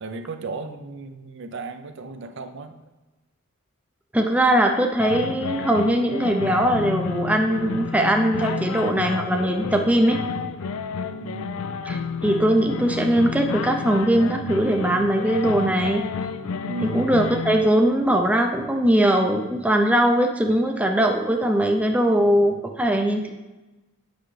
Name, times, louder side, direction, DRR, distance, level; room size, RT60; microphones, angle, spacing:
voice 1, 0.0-2.8 11.2-11.5 16.7-17.1, right 2 dB, 55° right, 8 dB, 0.6 m, -34 dB
voice 2, 4.1-10.2 11.8-16.0 16.9-23.3, right 1 dB, 5° right, 3 dB, 0.5 m, -20 dB
sound 1, 5.0-17.7, left 5 dB, 75° left, 0.4 m, -31 dB
8.1 x 6.2 x 3.3 m, 1.1 s
head